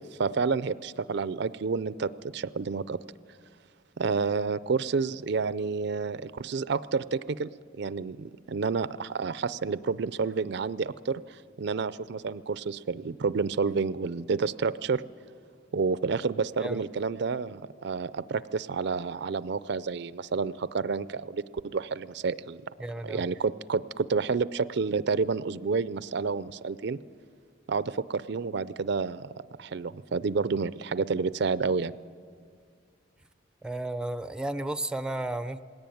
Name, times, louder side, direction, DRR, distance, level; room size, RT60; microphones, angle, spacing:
voice 1, 0.2-3.0 4.0-7.5 7.8-15.0 15.7-22.6 23.0-27.0 27.7-29.3 29.6-31.9, right 4 dB, 60° right, 16 dB, 0.4 m, -29 dB
voice 2, 22.8-23.3 33.6-35.6, right 1 dB, 5° right, 11 dB, 0.5 m, -33 dB
20.0 x 17.5 x 9.3 m, 2.1 s
head